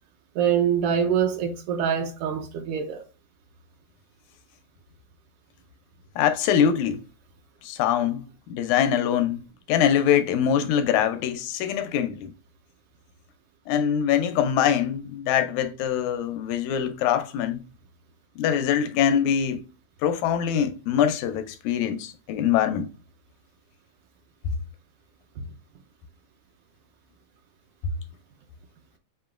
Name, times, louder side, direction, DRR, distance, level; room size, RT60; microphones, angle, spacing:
voice 1, 0.3-3.0, right 8 dB, 85° right, 1.3 m, -24 dB
voice 2, 6.2-7.0 7.6-9.4 9.7-12.3 13.7-17.6 18.4-19.6 20.0-22.9, left 9 dB, 85° left, 1.9 m, -23 dB
6.9 x 2.9 x 2.4 m
omnidirectional pair, 3.3 m